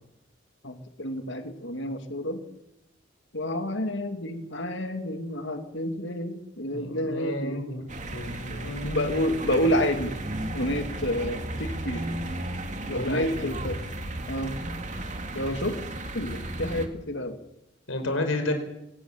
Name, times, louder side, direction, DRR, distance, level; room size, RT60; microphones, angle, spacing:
voice 1, 0.6-2.4 3.3-7.6 8.9-10.2 10.5-12.2 12.9-13.8 14.3-14.6 15.3-15.8 16.1-17.4, equal, 65° left, 7 dB, 2.5 m, -29 dB
voice 2, 6.7-9.2 12.9-13.5 17.9-18.5, left 1 dB, 80° left, 7 dB, 4.9 m, -31 dB
sound 1, 7.9-16.9, right 1 dB, 40° right, 2.4 m, -34 dB
25.0 x 18.0 x 7.5 m, 0.87 s
head